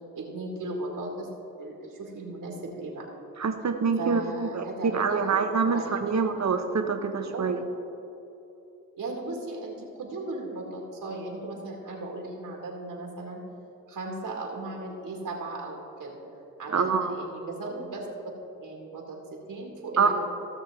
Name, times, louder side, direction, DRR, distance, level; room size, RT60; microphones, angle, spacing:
voice 1, 0.1-3.1 4.0-5.4 5.6-6.2 7.3-7.5 9.0-13.4 13.9-16.2 16.6-18.1 18.6-20.1, right 2 dB, 70° right, -1 dB, 2.1 m, -37 dB
voice 2, 3.4-7.6 16.7-17.1 20.0-20.1, right 5 dB, 50° right, 6 dB, 1.1 m, -26 dB
16.5 x 6.4 x 3.7 m, 2.9 s
supercardioid pair, 45°, 35 cm